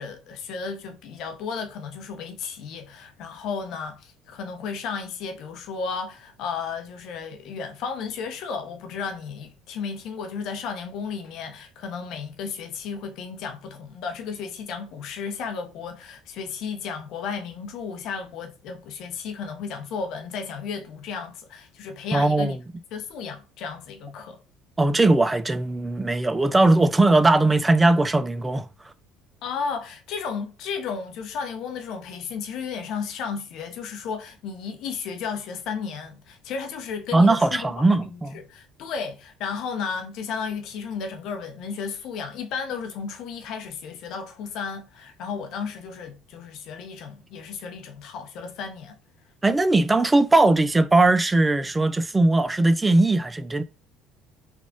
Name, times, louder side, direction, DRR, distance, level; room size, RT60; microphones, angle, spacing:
voice 1, 0.0-22.6 22.9-24.4 29.4-37.7 38.0-49.0, left 6 dB, 65° left, 0.8 m, -33 dB
voice 2, 22.1-22.6 24.8-28.7 37.1-38.4 49.4-53.6, right 2 dB, 15° right, 0.4 m, -19 dB
3.5 x 2.4 x 3.7 m
hypercardioid pair, 70°, 0 cm